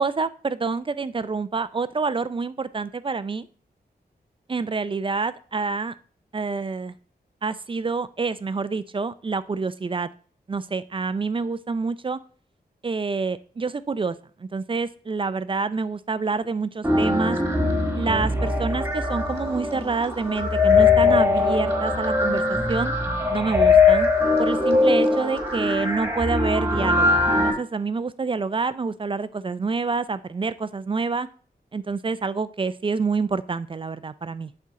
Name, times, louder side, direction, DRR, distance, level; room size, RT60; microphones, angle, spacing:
voice 1, 0.0-0.3 0.6-3.5 4.5-5.9 6.3-6.9 7.4-10.1 10.5-12.2 12.8-14.2 14.4-17.4 17.9-22.9 23.3-24.1 24.4-31.3 31.7-34.5, right 4 dB, 30° right, 15 dB, 0.4 m, -27 dB
sound 1, 16.8-27.5, left 3 dB, 15° right, 1.6 m, -21 dB
11.0 x 4.3 x 3.7 m, 0.43 s
wide cardioid pair, 125°, 17 cm